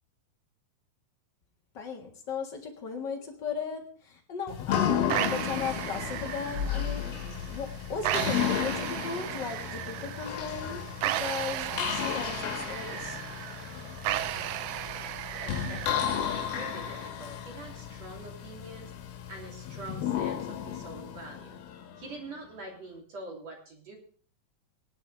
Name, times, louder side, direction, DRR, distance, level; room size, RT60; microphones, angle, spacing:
voice 1, 1.7-13.2, left 5 dB, 50° left, 2 dB, 1.4 m, -37 dB
sound 1, 4.5-22.3, left 9 dB, 75° left, 3.0 m, -34 dB
sound 2, 5.1-17.1, right 13 dB, 80° right, 2.5 m, -35 dB
voice 2, 15.3-18.9 19.3-21.6 22.0-24.0, right 2 dB, 40° right, 0 dB, 3.8 m, -45 dB
19.5 x 11.0 x 3.3 m, 0.43 s
omnidirectional pair, 4.6 m